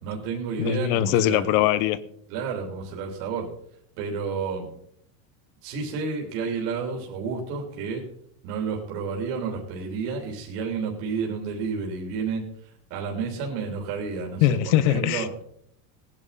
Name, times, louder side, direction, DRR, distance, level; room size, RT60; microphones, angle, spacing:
voice 1, 0.0-1.5 2.3-3.5 4.0-4.7 5.6-8.0 8.4-15.3, right 5 dB, 60° right, 0 dB, 3.3 m, -31 dB
voice 2, 0.6-2.0 14.4-15.4, left 12 dB, 65° left, 15 dB, 1.1 m, -22 dB
18.5 x 10.5 x 4.2 m, 0.69 s
cardioid pair, 165°, 48 cm